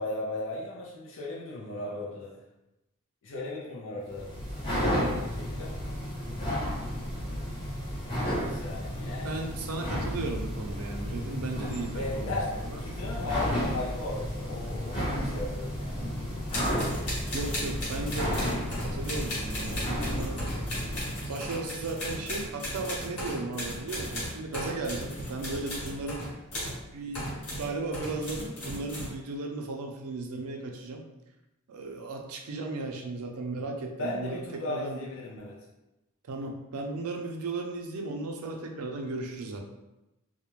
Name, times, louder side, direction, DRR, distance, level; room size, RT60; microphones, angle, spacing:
voice 1, 0.0-2.4 3.2-4.3 4.7-5.8 8.4-9.4 11.9-16.0 34.0-35.6, left 2 dB, 60° left, -5 dB, 0.5 m, -36 dB
sound 1, 4.1-21.3, equal, 25° left, 0.7 m, -32 dB
voice 2, 9.2-12.4 12.6-12.8 17.3-20.5 21.2-26.2 26.9-31.0 31.7-35.1 36.3-39.6, right 3 dB, 85° right, 2 dB, 0.4 m, -36 dB
sound 2, 16.5-26.8 27.1-29.1, equal, 80° left, 1.1 m, -36 dB
2.4 x 2.1 x 2.9 m, 0.95 s
head